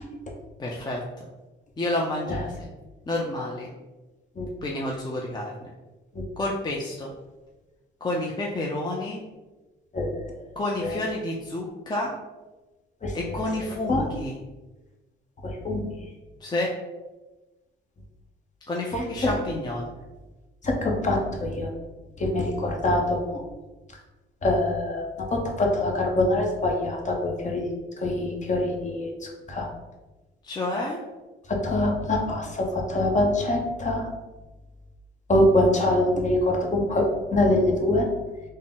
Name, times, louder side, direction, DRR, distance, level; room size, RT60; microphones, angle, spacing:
voice 1, 0.6-1.2 1.8-2.7 3.1-3.7 4.6-5.5 6.4-7.1 8.0-9.2 10.6-12.1 13.1-14.4 16.4-16.7 18.7-19.9 30.4-31.0, left 1 dB, 20° left, -2 dB, 0.5 m, -29 dB
voice 2, 13.0-13.4 13.9-14.1 15.4-15.9 19.2-19.3 20.6-21.7 22.2-23.4 24.4-27.7 28.0-29.7 31.5-34.1 35.3-37.0 37.3-38.1, left 1 dB, 40° left, 0 dB, 0.9 m, -24 dB
3.8 x 2.1 x 3.7 m, 1.1 s
cardioid pair, 90°, 20 cm